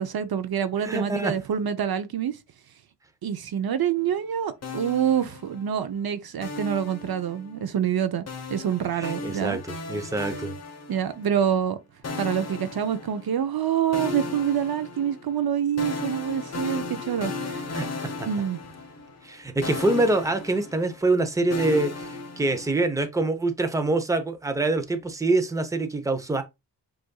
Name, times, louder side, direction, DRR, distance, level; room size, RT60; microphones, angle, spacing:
voice 1, 0.0-2.4 3.2-9.6 10.9-11.8 12.2-17.6 18.2-18.6, right 8 dB, 65° right, 0.6 m, -26 dB
voice 2, 0.8-1.3 8.9-10.5 17.7-17.9 18.2-18.3 19.2-26.4, right 2 dB, 10° right, 0.6 m, -25 dB
sound 1, 4.6-5.9 6.4-7.6 8.3-11.4 12.0-13.6 13.9-19.4 19.6-22.9, left 3 dB, 40° left, 0.8 m, -36 dB
7.6 x 2.6 x 2.2 m
wide cardioid pair, 140°, 40 cm